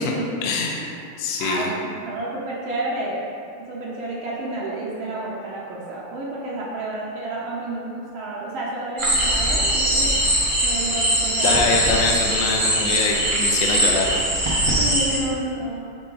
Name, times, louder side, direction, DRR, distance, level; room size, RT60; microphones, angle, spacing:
voice 1, 0.4-1.7 11.4-14.2 14.5-14.7, left 3 dB, 75° left, 0 dB, 1.2 m, -24 dB
voice 2, 1.4-3.2 3.7-10.1 10.6-11.6 14.8-15.8, right 2 dB, 70° right, -6 dB, 1.5 m, -30 dB
sound 1, 9.0-15.2, right 1 dB, 35° right, 0.5 m, -21 dB
6.7 x 3.7 x 3.9 m, 2.5 s
omnidirectional pair, 2.4 m